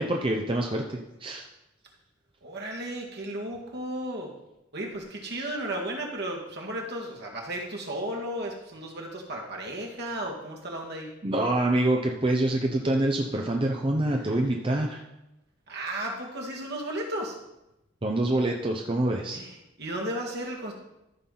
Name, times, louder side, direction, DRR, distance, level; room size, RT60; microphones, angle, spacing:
voice 1, 0.0-1.5 11.2-15.0 18.0-19.4, right 1 dB, 25° right, 1 dB, 0.7 m, -26 dB
voice 2, 2.4-4.3 4.7-11.1 15.7-17.4 19.3-20.7, right 1 dB, 60° right, 0 dB, 1.9 m, -34 dB
13.5 x 6.0 x 3.9 m, 0.90 s
head